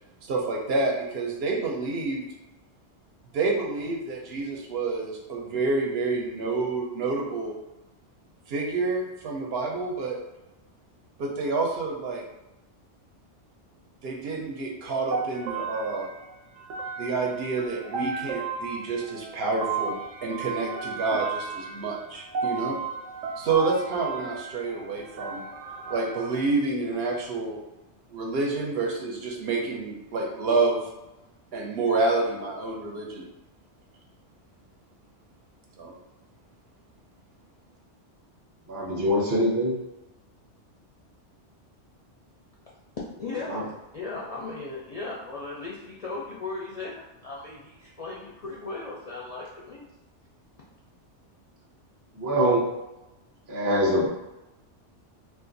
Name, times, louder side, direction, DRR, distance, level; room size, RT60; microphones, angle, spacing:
voice 1, 0.2-2.2 3.3-7.5 8.5-10.2 11.2-12.2 14.0-16.1 17.0-22.8 23.4-25.4 25.9-27.6 28.1-30.8 31.5-33.3 35.8-35.9, right 3 dB, 65° right, -1 dB, 0.8 m, -28 dB
sound 1, 15.1-26.4, right 5 dB, 90° right, 0.9 m, -34 dB
voice 2, 38.7-39.8 43.5-43.6 52.2-52.7 53.5-54.1, equal, 30° right, -2 dB, 0.3 m, -23 dB
voice 3, 43.2-49.8, left 3 dB, 55° left, -5 dB, 0.4 m, -37 dB
2.5 x 2.4 x 3.8 m, 0.98 s
omnidirectional pair, 1.2 m